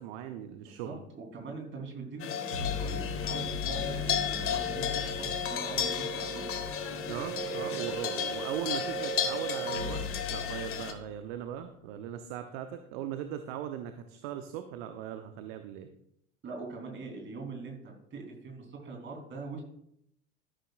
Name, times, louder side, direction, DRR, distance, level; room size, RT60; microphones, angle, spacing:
voice 1, 0.0-1.0 7.1-10.0 10.3-15.9, right 10 dB, 50° right, 8 dB, 0.9 m, -39 dB
voice 2, 0.6-6.5 16.4-19.6, right 4 dB, 30° right, 1 dB, 3.6 m, -43 dB
sound 1, 2.2-10.9, left 8 dB, 35° left, 1.4 m, -34 dB
sound 2, 2.5-11.1, equal, 75° right, 2.9 m, -38 dB
13.0 x 11.5 x 2.5 m, 0.75 s
figure-of-eight pair, 80°, 40 cm